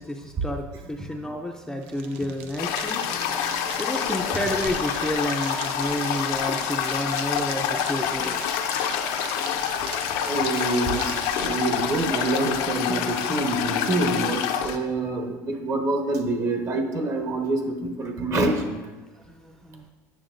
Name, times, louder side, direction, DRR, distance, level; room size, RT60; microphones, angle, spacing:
voice 1, 0.0-8.4 19.3-19.8, left 1 dB, 5° left, 2 dB, 0.5 m, -31 dB
sound 1, 1.8-12.1, right 6 dB, 90° right, 0.7 m, -41 dB
Toilet flush, 2.6-14.8, left 8 dB, 80° left, 0.6 m, -27 dB
voice 2, 10.3-18.8, right 2 dB, 45° right, 3 dB, 1.2 m, -26 dB
8.9 x 6.9 x 2.5 m, 1.2 s
supercardioid pair, 115°, 7 cm